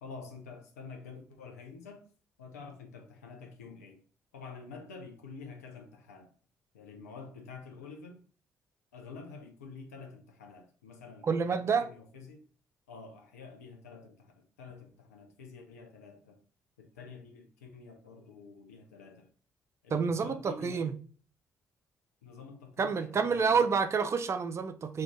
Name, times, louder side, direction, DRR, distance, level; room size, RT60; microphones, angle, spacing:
voice 1, 0.0-2.1 2.4-4.0 4.3-6.3 6.7-8.2 8.9-12.4 12.9-16.4 16.8-19.3 19.8-20.9 22.2-23.7, left 4 dB, 80° left, 0.5 m, -48 dB
voice 2, 11.2-11.9 19.9-21.0 22.8-25.0, right 5 dB, 35° right, 0.3 m, -28 dB
2.5 x 2.3 x 3.2 m
figure-of-eight pair, 40°, 8 cm